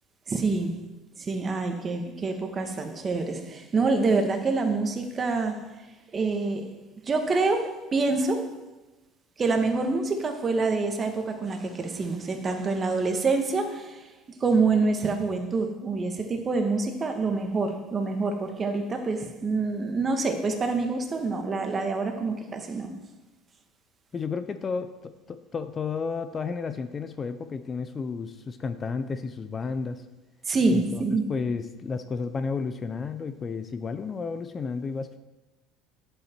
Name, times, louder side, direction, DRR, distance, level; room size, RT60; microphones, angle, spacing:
voice 1, 0.3-0.7 1.2-5.6 6.1-6.6 7.1-8.4 9.4-14.1 14.4-22.9 30.4-31.3, right 3 dB, 25° right, 5 dB, 1.4 m, -26 dB
voice 2, 24.1-30.0 30.7-31.0 31.3-35.2, left 5 dB, 30° left, 10 dB, 0.5 m, -32 dB
10.0 x 8.0 x 4.5 m, 1.1 s
supercardioid pair, 120°, 0 cm